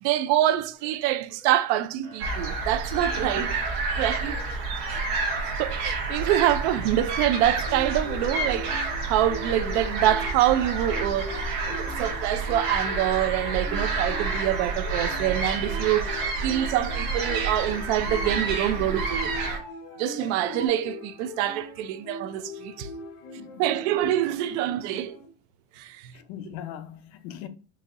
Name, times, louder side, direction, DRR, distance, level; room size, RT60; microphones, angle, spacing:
voice 1, 0.0-3.5 4.0-4.4 4.9-5.0 5.6-8.8 9.1-11.4 11.7-19.4 20.0-22.9 23.6-25.2 25.8-26.1, right 12 dB, 75° right, 0.5 m, -26 dB
Motor vehicle (road) / Siren, 0.7-1.7 2.0-2.5 2.9-4.2 6.1-6.7 7.0-10.0 10.4-10.9 11.3-20.7, right 3 dB, 25° right, 1.4 m, -45 dB
sound 1, 2.2-19.6, right 3 dB, 55° right, 1.3 m, -29 dB
voice 2, 3.0-3.6 4.1-4.4 23.4-23.8 25.8-27.5, left 10 dB, 60° left, 0.6 m, -41 dB
sound 2, 7.2-25.3, left 2 dB, 85° left, 0.9 m, -42 dB
4.0 x 2.8 x 2.5 m
cardioid pair, 165°, 34 cm